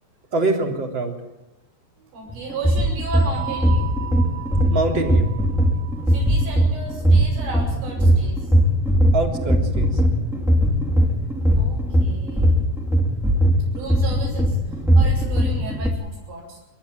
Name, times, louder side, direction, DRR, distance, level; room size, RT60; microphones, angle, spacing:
voice 1, 0.3-1.1 4.7-5.3 9.1-10.0, right 3 dB, 30° right, 2 dB, 3.5 m, -24 dB
voice 2, 2.0-3.9 6.1-8.5 11.5-12.5 13.7-16.6, right 3 dB, 85° right, -5 dB, 8.0 m, -35 dB
sound 1, 2.3-15.9, equal, ahead, 1.7 m, -19 dB
sound 2, 3.1-7.8, right 12 dB, 55° right, 7.5 m, -37 dB
29.0 x 13.0 x 9.3 m, 0.98 s
omnidirectional pair, 5.0 m